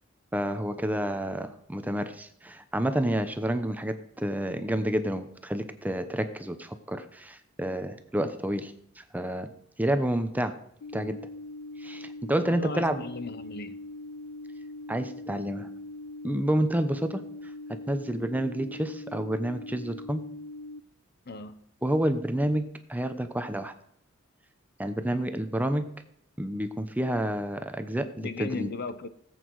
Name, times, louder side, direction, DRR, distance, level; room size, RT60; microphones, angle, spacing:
voice 1, 0.3-8.7 9.1-9.5 9.8-10.6 10.9-11.2 11.8-13.0 14.9-15.7 16.2-17.2 17.9-20.2 21.8-22.6 22.9-23.7 24.8-25.9 26.4-28.7, right 1 dB, 10° right, 0.8 m, -29 dB
sound 1, 10.8-20.8, left 2 dB, 70° left, 0.5 m, -41 dB
voice 2, 12.4-13.8 21.3-21.6 28.2-29.1, left 3 dB, 50° left, 0.9 m, -37 dB
18.0 x 8.3 x 4.7 m
head